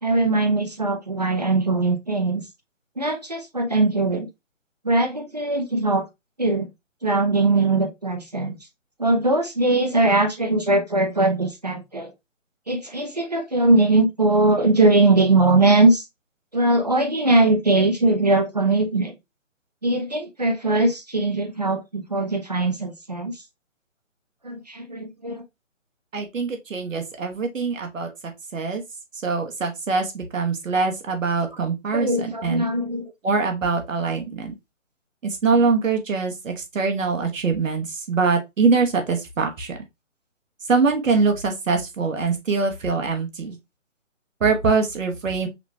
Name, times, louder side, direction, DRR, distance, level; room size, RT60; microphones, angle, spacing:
voice 1, 0.0-2.4 3.0-4.3 4.8-6.1 6.4-6.7 7.0-8.6 9.0-12.1 12.7-16.0 16.5-19.1 19.8-23.3 24.4-25.4 31.9-33.1, right 2 dB, 35° right, 0.5 m, -20 dB
voice 2, 26.1-28.1 28.5-28.8 29.1-32.7 33.2-34.5 35.2-39.8 40.7-43.6 44.4-45.5, right 4 dB, 80° right, 1.1 m, -23 dB
5.8 x 2.2 x 2.7 m
hypercardioid pair, 175°, 39 cm